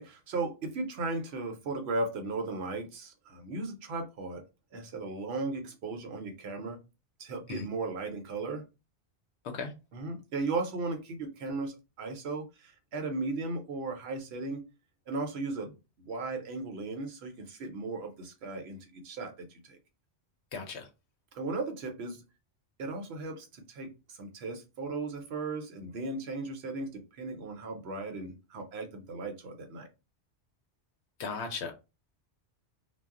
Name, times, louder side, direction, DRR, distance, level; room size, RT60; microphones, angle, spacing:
voice 1, 0.0-4.4 4.7-6.8 7.2-8.6 9.9-14.7 15.1-19.8 21.3-22.2 22.8-29.9, right 3 dB, 65° right, 0.9 m, -36 dB
voice 2, 20.5-20.9 31.2-31.7, left 5 dB, 70° left, 0.8 m, -36 dB
2.3 x 2.0 x 3.5 m
omnidirectional pair, 1.2 m